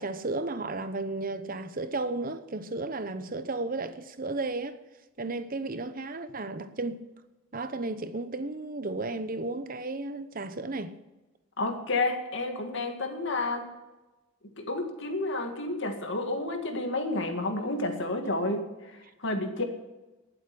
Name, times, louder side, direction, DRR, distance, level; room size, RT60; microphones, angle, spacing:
voice 1, 0.0-4.8 5.2-7.0 7.5-11.0, right 2 dB, 40° right, 0.9 m, -33 dB
voice 2, 11.6-13.7 14.6-18.7 19.2-19.6, left 2 dB, 60° left, 2.1 m, -30 dB
19.0 x 8.0 x 6.0 m
head